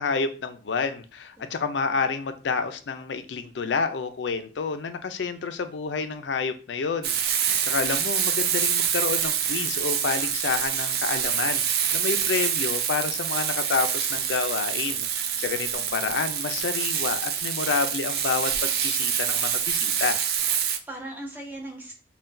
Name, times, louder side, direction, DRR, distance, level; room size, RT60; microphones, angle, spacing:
voice 1, 0.0-11.6 11.9-20.2, left 5 dB, 90° left, 9 dB, 0.4 m, -29 dB
Frying (food), 7.0-20.8, right 8 dB, 60° right, 0.4 m, -26 dB
voice 2, 15.0-15.4 15.7-16.3 20.5-22.0, right 1 dB, 10° right, 0 dB, 0.8 m, -41 dB
5.6 x 2.3 x 2.6 m, 0.37 s
head